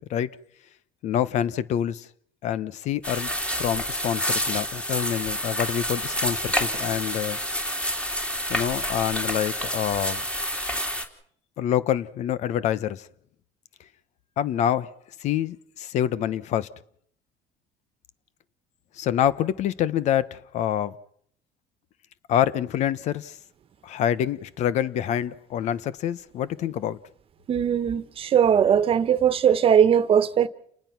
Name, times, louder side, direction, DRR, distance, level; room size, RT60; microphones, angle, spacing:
voice 1, 1.0-2.1 2.4-7.4 8.5-10.2 11.6-13.1 14.4-14.9 15.2-16.7 19.0-21.0 22.3-23.4 23.8-27.0, left 10 dB, 60° left, 1.1 m, -26 dB
sound 1, 3.0-11.1, equal, 10° left, 3.3 m, -28 dB
voice 2, 27.5-30.5, right 8 dB, 45° right, 1.4 m, -20 dB
29.5 x 19.5 x 6.0 m
cardioid pair, 105°, 13 cm